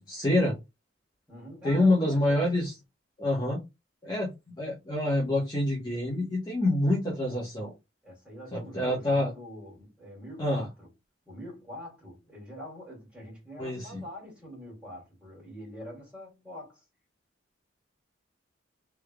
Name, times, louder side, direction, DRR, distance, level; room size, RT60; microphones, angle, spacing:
voice 1, 0.1-0.6 1.6-2.7 3.2-3.6 4.0-7.7 8.5-9.3 10.4-10.6 13.6-14.0, left 1 dB, 20° left, 1.1 m, -27 dB
voice 2, 1.3-2.5 8.0-10.9 11.3-16.8, left 1 dB, 5° right, 2.5 m, -44 dB
4.2 x 3.4 x 2.3 m
head